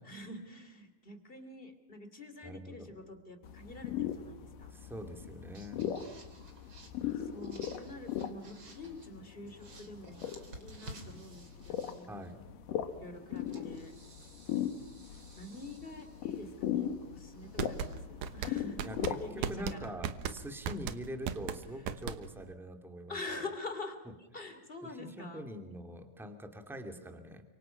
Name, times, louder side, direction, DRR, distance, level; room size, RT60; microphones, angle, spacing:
voice 1, 0.0-4.7 7.1-10.3 10.6-12.3 12.9-13.9 15.3-19.9 20.6-20.9 23.1-25.5, left 2 dB, 15° left, 8 dB, 2.5 m, -46 dB
voice 2, 2.4-2.9 4.7-5.8 12.1-12.4 18.8-19.0 19.3-23.2 24.8-27.4, equal, ahead, 5 dB, 1.9 m, -44 dB
sound 1, 2.9-3.4 5.2-5.3 5.5-9.2 9.5-12.3 13.1-18.0, right 2 dB, 35° right, 3.8 m, -55 dB
sound 2, 3.4-19.6, left 10 dB, 75° left, 3.0 m, -39 dB
sound 3, 17.4-22.5, right 8 dB, 75° right, 2.6 m, -37 dB
30.0 x 26.0 x 5.9 m, 1.0 s
omnidirectional pair, 3.9 m